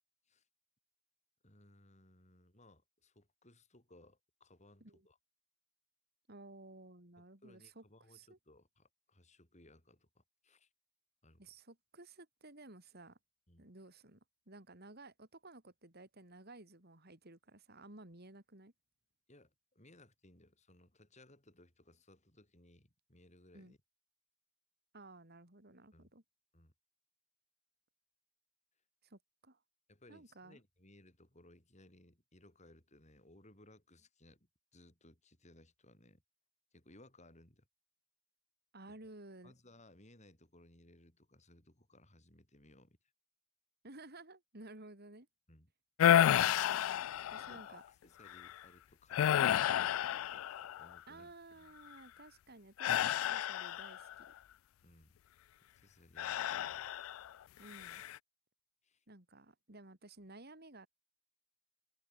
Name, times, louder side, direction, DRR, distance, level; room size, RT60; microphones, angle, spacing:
voice 1, 1.4-5.2 7.2-10.7 11.2-11.4 13.5-13.7 19.3-23.8 25.9-26.1 26.5-26.7 29.9-36.2 36.7-37.7 38.9-39.1 39.4-43.0 45.5-45.7 47.4-51.8 54.8-55.1 55.7-56.9 58.8-59.0, left 1 dB, 35° left, 7.9 m, -63 dB
voice 2, 6.3-8.4 11.4-13.2 13.6-14.2 14.5-18.7 23.5-23.7 24.9-26.2 29.0-29.6 30.1-30.6 38.7-39.5 43.8-45.3 46.0-47.0 47.3-47.8 51.1-54.3 57.6-58.0 59.1-60.9, right 2 dB, 50° right, 4.5 m, -55 dB
sound 1, 46.0-47.7 48.3-48.5 49.1-51.0 52.8-54.1 56.2-57.3 57.7-58.2, left 10 dB, 85° left, 0.3 m, -31 dB
head